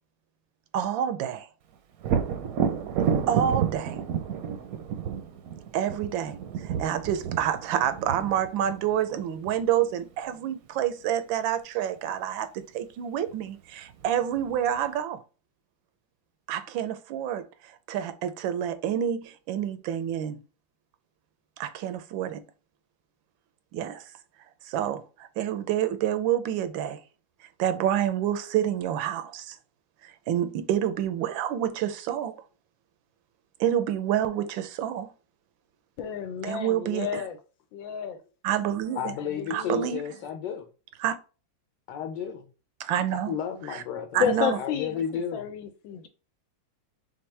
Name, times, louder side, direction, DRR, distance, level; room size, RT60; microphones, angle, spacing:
voice 1, 0.7-1.5 3.3-4.0 5.7-15.2 16.5-20.4 21.6-22.4 23.7-24.0 24.6-27.0 27.6-29.6 30.0-32.4 33.6-35.1 36.4-37.2 38.4-39.1 39.5-40.0 41.0-41.1 42.8-43.3 43.7-43.8 44.1-44.6, right 10 dB, 90° right, 1.4 m, -28 dB
Thunder, 2.0-9.7 13.3-13.4 13.9-14.8, right 7 dB, 65° right, 0.9 m, -30 dB
voice 2, 36.0-37.4 37.7-38.2 39.2-39.9 44.2-46.1, left 8 dB, 90° left, 1.5 m, -31 dB
voice 3, 39.0-40.7 41.9-42.4 43.3-44.3 44.5-45.5, left 7 dB, 70° left, 1.3 m, -32 dB
4.4 x 3.6 x 3.2 m
omnidirectional pair, 2.0 m